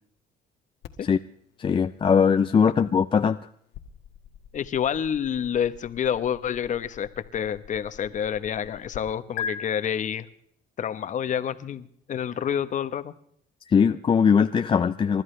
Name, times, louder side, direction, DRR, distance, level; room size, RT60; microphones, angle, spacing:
sound 1, 0.8-9.0 9.4-9.5, left 7 dB, 85° left, 1.6 m, -42 dB
voice 1, 1.6-3.4 13.7-15.2, left 6 dB, 30° left, 9 dB, 0.6 m, -20 dB
voice 2, 4.5-10.3 10.8-13.1, left 8 dB, 45° left, 12 dB, 1.1 m, -28 dB
29.5 x 13.5 x 3.3 m, 0.68 s
cardioid pair, 110°, 17 cm